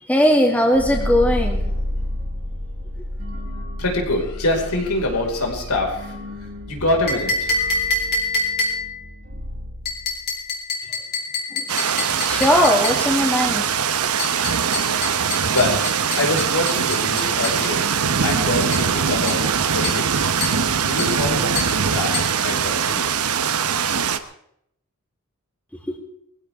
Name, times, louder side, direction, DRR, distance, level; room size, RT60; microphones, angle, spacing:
voice 1, 0.0-1.6 11.5-11.7 12.3-13.7 25.9-26.0, left 1 dB, 5° left, 1 dB, 2.4 m, -18 dB
sound 1, 0.7-10.4, left 1 dB, 60° right, 4.0 m, -30 dB
voice 2, 3.8-6.1 6.7-7.8 15.4-15.8 16.2-19.4 19.7-20.3 20.8-21.5 21.8-23.1, left 2 dB, 90° left, 0 dB, 5.0 m, -25 dB
sound 2, 7.1-9.0 9.9-13.1 14.2-17.7 18.7-18.9 19.3-19.5 19.8-20.1 20.4-20.7 21.0-21.2 21.6-21.8 22.1-22.4, left 3 dB, 50° left, 3.9 m, -27 dB
sound 3, 11.7-24.2, right 7 dB, 80° right, 1.0 m, -22 dB
21.0 x 16.0 x 3.6 m, 0.72 s
head